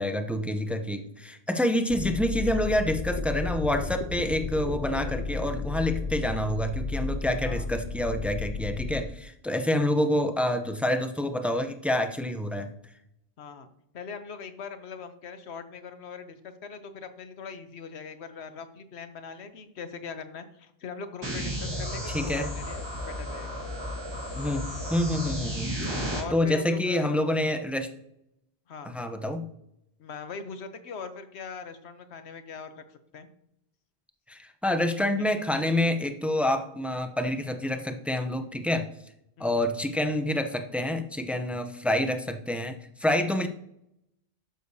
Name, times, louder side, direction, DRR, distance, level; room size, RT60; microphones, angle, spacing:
voice 1, 0.0-12.7 22.1-22.5 24.4-24.6 24.9-25.7 26.3-27.9 28.8-29.5 34.3-38.9 39.4-43.5, left 1 dB, ahead, 7 dB, 0.4 m, -27 dB
sound 1, 1.9-9.0, left 4 dB, 55° left, 0.5 m, -33 dB
voice 2, 13.4-13.7 13.9-23.6 26.1-27.2 28.7-28.9 30.0-33.3 35.2-35.3 39.4-39.6, left 5 dB, 85° left, 9 dB, 1.1 m, -41 dB
sound 2, 21.2-26.2, equal, 25° right, 1.5 m, -33 dB
12.5 x 6.5 x 2.7 m, 0.78 s
omnidirectional pair, 1.1 m